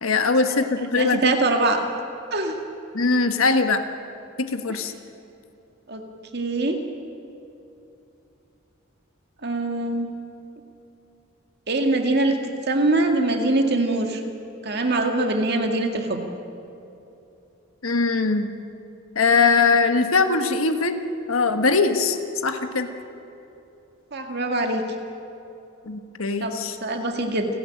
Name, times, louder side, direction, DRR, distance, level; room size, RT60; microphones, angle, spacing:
voice 1, 0.0-1.3 2.9-3.9 4.4-4.9 17.8-18.5 19.1-21.0 21.3-22.2 22.4-22.9 25.9-26.8, left 4 dB, 85° left, 7 dB, 1.4 m, -21 dB
voice 2, 1.0-1.8 2.3-2.6 5.9-6.0 6.3-6.8 9.4-10.1 11.7-12.4 12.7-14.2 14.6-16.2 24.1-24.8 26.4-26.6 26.8-27.5, right 2 dB, 50° right, 4 dB, 2.0 m, -23 dB
29.5 x 10.5 x 9.0 m, 2.9 s
head